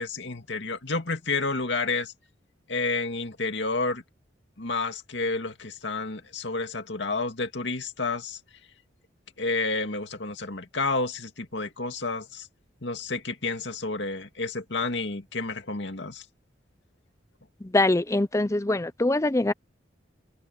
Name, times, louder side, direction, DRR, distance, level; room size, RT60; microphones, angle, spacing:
voice 1, 0.0-2.1 2.7-4.0 4.6-8.4 9.4-12.5 12.8-16.2, left 3 dB, 70° left, 2.3 m, -30 dB
voice 2, 17.6-19.5, left 2 dB, 15° left, 0.5 m, -23 dB
head